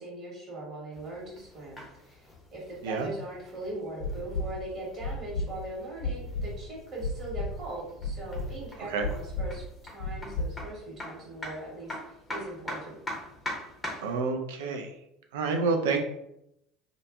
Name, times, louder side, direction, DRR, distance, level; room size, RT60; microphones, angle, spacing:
voice 1, 0.0-2.3 2.5-13.0, right 1 dB, 45° right, -5 dB, 1.4 m, -40 dB
sound 1, 0.9-14.2, left 1 dB, 15° left, 0.7 m, -44 dB
sound 2, 4.0-4.5 5.0-5.5 6.0-6.5 7.0-7.5 8.0-8.5 9.0-9.5 10.0-10.5 11.0-11.1, left 3 dB, 65° left, 0.4 m, -31 dB
voice 2, 14.0-14.9 15.3-16.0, right 4 dB, 65° right, 4 dB, 0.4 m, -28 dB
2.5 x 2.4 x 2.5 m, 0.80 s
figure-of-eight pair, 65°, 0 cm